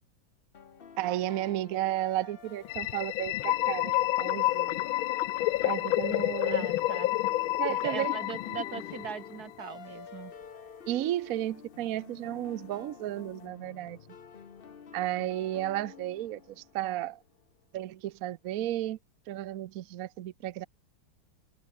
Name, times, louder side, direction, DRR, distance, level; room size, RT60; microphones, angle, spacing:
sound 1, 0.5-17.4, left 6 dB, 40° left, 0.9 m, -49 dB
voice 1, 1.0-3.9 4.2-4.8 5.6-6.7 7.6-8.2 10.9-14.0 14.9-17.2 17.7-19.0 19.3-20.7, right 13 dB, 70° right, 0.8 m, -33 dB
sound 2, 2.7-9.4, left 16 dB, 85° left, 1.5 m, -29 dB
voice 2, 6.4-7.1 7.7-10.3, right 7 dB, 50° right, 2.1 m, -40 dB
omnidirectional pair, 2.2 m